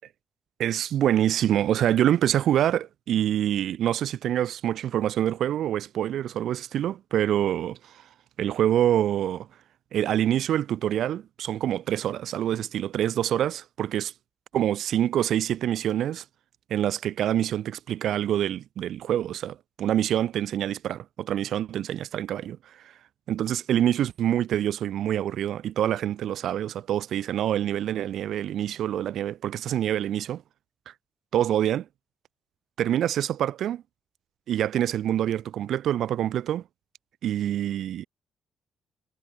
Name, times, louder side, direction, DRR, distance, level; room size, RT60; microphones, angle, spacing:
voice 1, 0.6-8.0 8.4-9.5 9.9-14.1 14.5-16.2 16.7-22.8 23.3-30.4 30.9-31.0 31.3-31.8 32.8-33.8 34.5-36.6 37.2-38.0, right 11 dB, 70° right, 1.8 m, -26 dB
cardioid pair, 90°, 0 cm